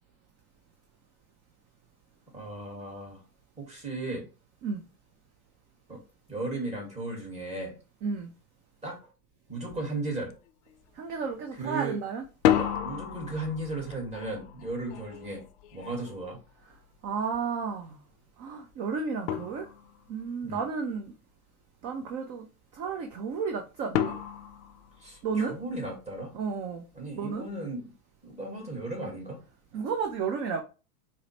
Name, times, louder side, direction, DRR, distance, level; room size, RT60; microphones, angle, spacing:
voice 1, 2.3-3.2 3.6-4.3 5.9-6.0 6.3-7.7 8.8-9.1 9.5-10.3 11.6-12.0 12.6-15.4 15.7-16.4 20.4-20.6 25.0-26.3 26.9-27.9 28.2-29.4, right 2 dB, 15° right, 1.4 m, -36 dB
sound 1, 9.7-9.9 10.2-10.8 12.2-17.1 18.7-18.8 19.3-20.2 23.9-25.7, left 10 dB, 50° left, 0.5 m, -32 dB
voice 2, 10.9-12.2 17.0-18.0 18.4-19.7 20.1-21.1 21.8-22.5 22.7-24.2 25.2-25.6 26.3-26.8 27.2-27.5 29.7-30.6, right 5 dB, 35° right, 0.5 m, -32 dB
4.7 x 2.1 x 2.8 m
hypercardioid pair, 110°, 46 cm